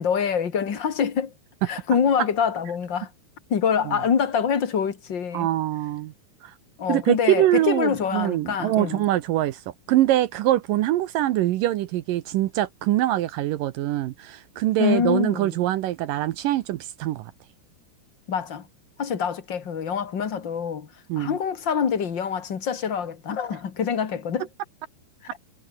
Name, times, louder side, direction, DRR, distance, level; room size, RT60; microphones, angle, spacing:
voice 1, 0.0-1.3 1.6-3.1 3.5-5.5 6.8-9.0 14.8-15.5 18.3-18.7 19.0-20.9 21.1-24.5, left 7 dB, 45° left, 1.6 m, -25 dB
voice 2, 5.3-6.1 6.4-6.5 6.9-9.6 9.9-17.3 21.1-21.4, right 14 dB, 75° right, 2.0 m, -23 dB
omnidirectional pair, 4.9 m